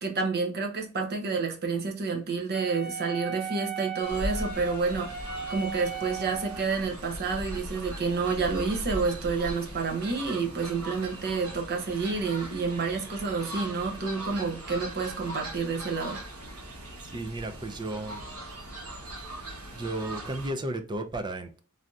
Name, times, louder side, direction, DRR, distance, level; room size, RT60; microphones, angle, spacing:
voice 1, 0.0-5.1 5.5-16.2, right 4 dB, 45° right, 0.8 m, -29 dB
Wind instrument woodwind instrument, 2.5-6.7, right 6 dB, 15° left, 1.0 m, -37 dB
Fowl, 4.0-20.5, right 1 dB, 80° right, 1.1 m, -39 dB
voice 2, 17.1-18.2 19.7-21.6, right 1 dB, 20° right, 0.4 m, -34 dB
3.3 x 2.6 x 2.3 m
head